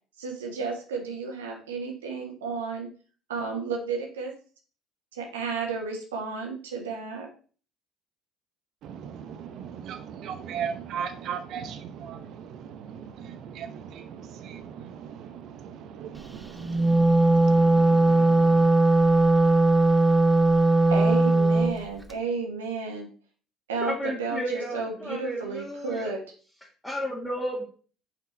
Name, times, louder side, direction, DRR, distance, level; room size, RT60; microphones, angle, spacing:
voice 1, 0.2-2.9 3.3-4.3 5.1-7.3 20.9-23.1 23.7-26.2, right 4 dB, 80° right, 1.2 m, -32 dB
voice 2, 8.8-18.7, right 7 dB, 55° right, 0.7 m, -38 dB
Wind instrument woodwind instrument, 16.6-21.8, right 2 dB, 10° right, 0.9 m, -19 dB
voice 3, 23.8-26.1 26.8-27.6, equal, 10° left, 1.9 m, -33 dB
5.9 x 5.6 x 4.2 m
figure-of-eight pair, 60°, 0 cm